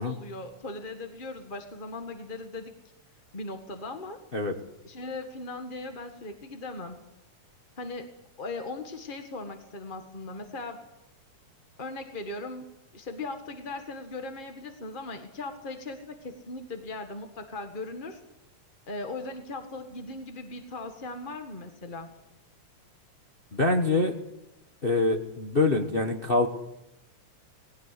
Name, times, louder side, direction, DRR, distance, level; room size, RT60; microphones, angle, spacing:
voice 1, 0.0-2.7 3.3-4.2 4.8-7.0 7.8-8.1 8.4-10.8 11.8-18.2 18.9-22.1, left 2 dB, 25° left, 6 dB, 1.0 m, -38 dB
voice 2, 23.5-24.1 24.8-26.5, left 2 dB, 45° left, 4 dB, 0.7 m, -25 dB
20.0 x 17.0 x 9.8 m, 0.88 s
omnidirectional pair, 3.4 m